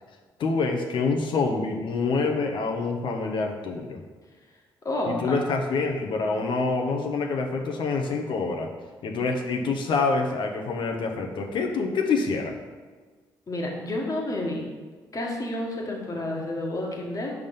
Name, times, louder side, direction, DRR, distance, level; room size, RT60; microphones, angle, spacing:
voice 1, 0.4-4.0 5.1-8.7 9.0-12.6, left 4 dB, 65° left, 3 dB, 0.8 m, -26 dB
voice 2, 4.8-5.3 13.5-14.7 15.1-17.3, left 1 dB, 40° left, -1 dB, 1.4 m, -30 dB
5.3 x 3.5 x 5.4 m, 1.4 s
supercardioid pair, 65°, 9 cm